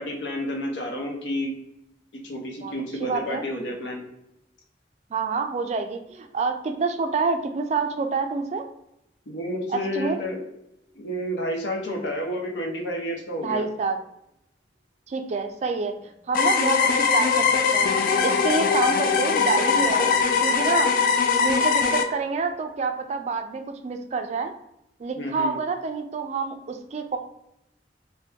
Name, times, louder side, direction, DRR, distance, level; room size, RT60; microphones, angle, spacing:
voice 1, 0.0-1.6 2.2-4.0 9.3-10.4 10.9-13.7 20.1-20.2 25.2-25.6, equal, 85° left, 1 dB, 0.8 m, -30 dB
voice 2, 3.0-3.4 5.1-8.7 9.7-10.2 13.4-14.0 15.1-16.0 16.3-20.1 20.4-20.9 21.4-24.5 25.0-27.2, right 4 dB, 40° right, 6 dB, 0.3 m, -27 dB
sound 1, 15.9-21.8, right 2 dB, 35° left, 1.2 m, -44 dB
sound 2, 16.3-22.0, left 5 dB, 50° left, 0.3 m, -21 dB
3.4 x 2.2 x 2.8 m, 0.82 s
head